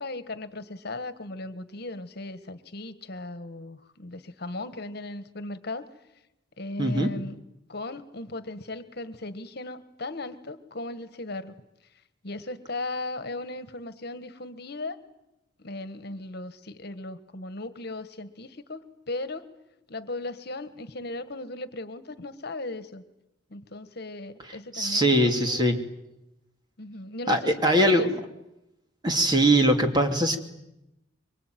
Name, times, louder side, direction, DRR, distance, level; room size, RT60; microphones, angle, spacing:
voice 1, 0.0-5.9 6.6-7.4 7.7-11.5 12.2-15.0 15.6-19.5 19.9-23.0 23.5-25.8 26.8-28.1, left 2 dB, 60° left, 12 dB, 1.6 m, -37 dB
voice 2, 6.8-7.1 24.7-25.8 27.3-28.2 29.0-30.4, right 1 dB, 25° right, 4 dB, 2.8 m, -21 dB
25.0 x 24.5 x 9.4 m, 0.90 s
head